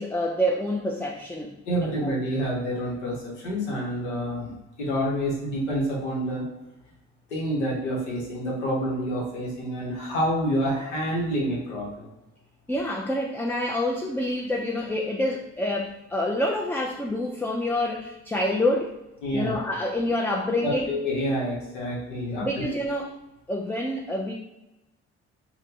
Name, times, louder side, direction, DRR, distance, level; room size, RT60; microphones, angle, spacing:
voice 1, 0.0-1.6 1.8-2.2 12.7-18.9 19.3-20.8 22.4-23.1 23.5-24.3, left 1 dB, 5° left, -1 dB, 0.4 m, -27 dB
voice 2, 1.7-6.4 7.3-12.0 19.2-19.5 20.6-22.5, equal, 85° left, -4 dB, 0.9 m, -28 dB
2.7 x 2.2 x 3.6 m, 0.97 s
hypercardioid pair, 45°, 34 cm